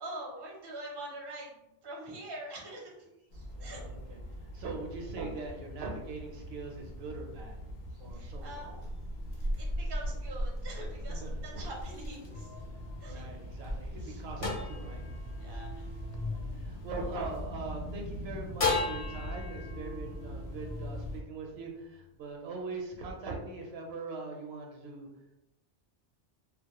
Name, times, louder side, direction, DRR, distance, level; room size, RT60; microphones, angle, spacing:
voice 1, 0.0-3.9 7.9-9.0 9.3-12.6 13.0-13.3 14.0-14.2 15.4-16.2 16.4-16.6, right 1 dB, 35° right, -2 dB, 0.4 m, -45 dB
sound 1, 3.3-21.2, equal, 75° left, 0.8 m, -40 dB
voice 2, 3.6-4.2 4.5-8.7 11.1-11.5 13.0-15.0 16.2-25.1, right 3 dB, 75° right, 1 dB, 0.8 m, -41 dB
sound 2, 12.3-17.6 18.6-22.0, left 3 dB, 40° left, 0.6 m, -38 dB
2.2 x 2.0 x 2.8 m, 0.92 s
omnidirectional pair, 1.1 m